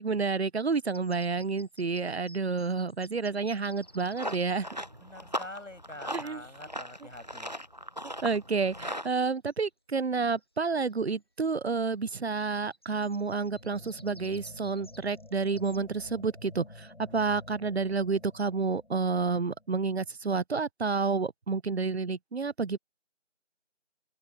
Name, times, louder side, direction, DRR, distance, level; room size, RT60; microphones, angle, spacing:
voice 1, 0.0-4.7 6.1-6.4 8.2-22.8, right 4 dB, 60° right, 0.6 m, -30 dB
sound 1, 0.7-4.7 8.1-8.2 8.8-9.2 9.5-9.6 9.9-11.0 12.3-15.8, equal, 20° left, 1.6 m, -56 dB
Run, 3.8-9.1, equal, 35° right, 0.8 m, -39 dB
voice 2, 5.0-7.6, left 1 dB, 85° left, 7.1 m, -45 dB
sound 2, 13.4-20.1, left 2 dB, 65° left, 3.7 m, -50 dB
figure-of-eight pair, 175°, 37 cm